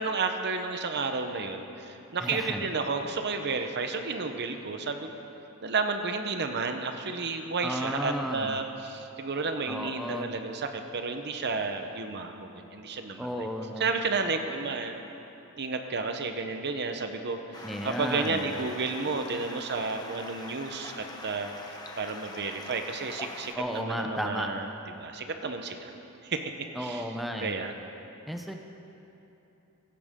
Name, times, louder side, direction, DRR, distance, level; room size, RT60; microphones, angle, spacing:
voice 1, 0.0-5.1 5.6-13.3 13.8-15.0 15.6-24.7 25.0-25.9 26.2-26.4 26.8-27.1 27.4-27.7, right 4 dB, 50° right, 6 dB, 0.9 m, -32 dB
voice 2, 2.2-2.7 7.6-8.6 9.7-10.3 13.2-13.9 17.6-18.5 23.5-24.5 26.8-27.5 28.3-28.5, equal, ahead, 3 dB, 0.7 m, -33 dB
Stream, 17.5-23.6, left 2 dB, 20° left, 1.0 m, -43 dB
17.0 x 15.5 x 3.7 m, 3.0 s
head